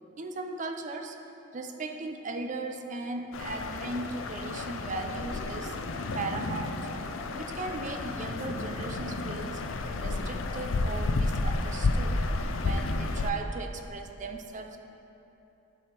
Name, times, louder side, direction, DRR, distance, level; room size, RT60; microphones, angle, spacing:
voice 1, 0.2-1.2 1.5-5.8 6.1-6.9 7.3-9.6 9.9-12.3 12.6-14.8, right 3 dB, 35° right, 5 dB, 0.5 m, -37 dB
sound 1, 3.3-13.3, left 2 dB, 65° left, 0.5 m, -31 dB
11.5 x 4.9 x 4.5 m, 2.9 s
head